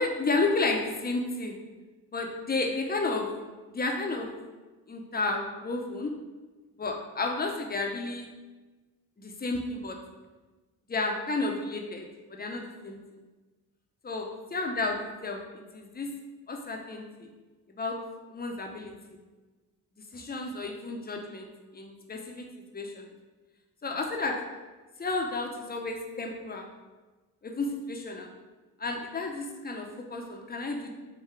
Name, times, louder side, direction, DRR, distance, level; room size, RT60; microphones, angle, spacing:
voice 1, 0.0-1.6 2.1-3.3 3.7-4.3 4.9-6.1 6.8-8.3 9.2-10.0 10.9-13.0 14.0-15.4 15.7-16.1 16.5-17.3 17.8-18.0 18.3-19.2 20.1-21.5 21.7-22.4 22.7-23.1 23.8-24.4 25.0-26.7 27.4-28.3 28.8-30.9, left 3 dB, 25° left, 2 dB, 0.7 m, -32 dB
3.6 x 2.3 x 4.4 m, 1.2 s
supercardioid pair, 60°, 40 cm